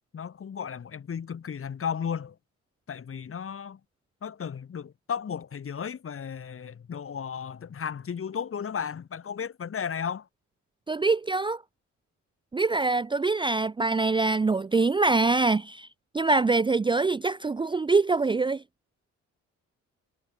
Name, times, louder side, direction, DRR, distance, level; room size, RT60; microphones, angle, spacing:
voice 1, 0.1-2.4 2.9-3.8 4.2-10.3, left 7 dB, 45° left, 3.3 m, -34 dB
voice 2, 10.9-11.6 12.5-15.9 16.1-18.6, right 3 dB, 15° right, 0.5 m, -24 dB
cardioid pair, 90°, 30 cm